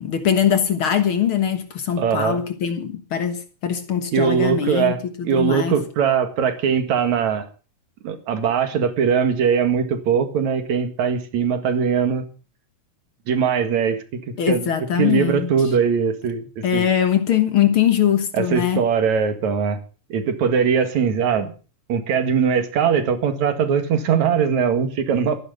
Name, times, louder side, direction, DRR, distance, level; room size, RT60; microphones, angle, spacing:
voice 1, 0.0-4.9 5.2-5.7 14.4-15.5 16.6-18.8, left 9 dB, 50° left, 2.0 m, -21 dB
voice 2, 2.0-2.4 4.1-7.5 8.0-12.2 13.3-14.2 14.5-14.7 15.0-16.9 18.3-19.8 20.1-21.5 21.9-25.4, right 7 dB, 70° right, 3.1 m, -21 dB
14.0 x 11.0 x 6.7 m
omnidirectional pair, 3.4 m